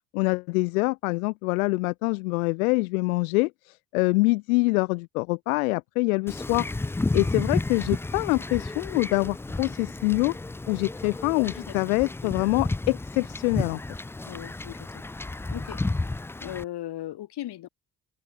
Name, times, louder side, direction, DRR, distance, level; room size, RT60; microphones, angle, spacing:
voice 1, 0.1-6.7 7.1-10.3 10.7-13.8, left 25 dB, 90° left, 1.3 m, -25 dB
Wind / Ocean / Boat Water vehicle, 6.3-16.6, left 2 dB, 5° left, 0.3 m, -32 dB
voice 2, 11.4-11.8 12.2-12.3 14.2-15.0 15.5-15.8 16.4-17.7, left 14 dB, 70° left, 5.1 m, -37 dB
open air
hypercardioid pair, 55°, 41 cm